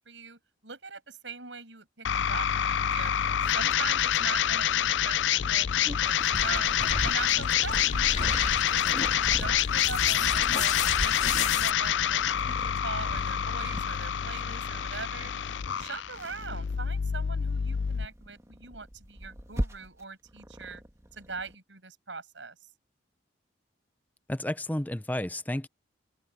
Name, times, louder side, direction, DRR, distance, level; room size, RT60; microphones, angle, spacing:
voice 1, 0.0-6.7 7.0-10.7 11.0-15.3 15.8-20.8 21.1-22.6, right 4 dB, 80° right, 6.9 m, -41 dB
sound 1, 2.0-18.1, left 9 dB, 80° left, 0.5 m, -27 dB
Purr, 2.8-21.5, equal, 15° right, 1.5 m, -43 dB
sound 2, 6.3-11.7, left 4 dB, 40° left, 2.0 m, -33 dB
voice 2, 24.3-25.7, left 1 dB, 10° left, 0.6 m, -31 dB
head